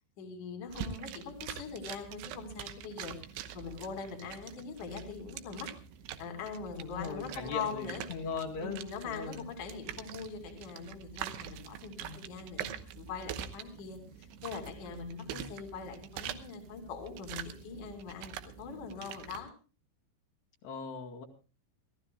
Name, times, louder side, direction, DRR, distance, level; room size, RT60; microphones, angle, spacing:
voice 1, 0.2-3.2 3.5-5.7 6.2-8.0 8.6-12.7 12.9-19.5, left 5 dB, 50° left, 4 dB, 3.5 m, -42 dB
sound 1, 0.7-19.4, right 10 dB, 75° right, 2.9 m, -45 dB
voice 2, 6.8-9.5 12.0-12.2 15.2-15.5 20.6-21.3, left 5 dB, 65° left, -1 dB, 4.1 m, -40 dB
28.0 x 15.0 x 2.2 m, 0.33 s
omnidirectional pair, 5.3 m